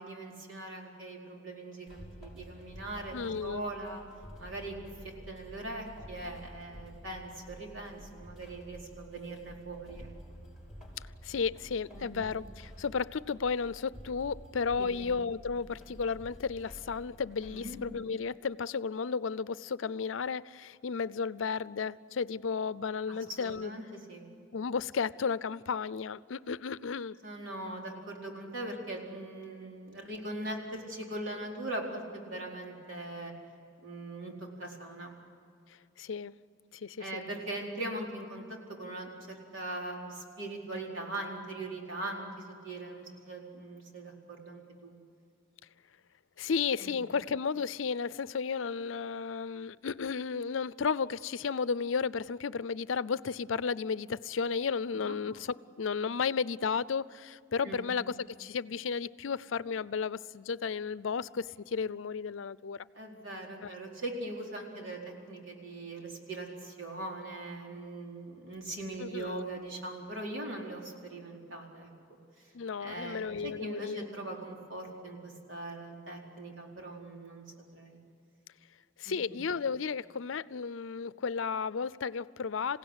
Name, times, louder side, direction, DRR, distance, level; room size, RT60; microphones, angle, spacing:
voice 1, 0.0-4.0 4.4-4.8 5.0-10.1 11.9-12.3 14.8-15.1 17.5-17.8 23.1-24.3 27.2-33.3 33.8-35.1 37.0-44.9 46.8-47.0 54.9-55.2 57.6-57.9 62.9-65.0 65.3-71.9 72.8-77.4 77.7-78.0 79.1-79.4, right 2 dB, 75° right, 4.4 m, -41 dB
sound 1, 1.9-17.8, equal, 5° right, 5.9 m, -50 dB
voice 2, 3.1-3.6 11.2-23.7 24.5-27.2 36.0-36.3 36.7-37.2 46.4-62.8 63.6-63.7 69.0-69.4 72.5-74.1 79.0-82.8, left 5 dB, 80° left, 0.5 m, -33 dB
27.5 x 16.5 x 9.8 m
head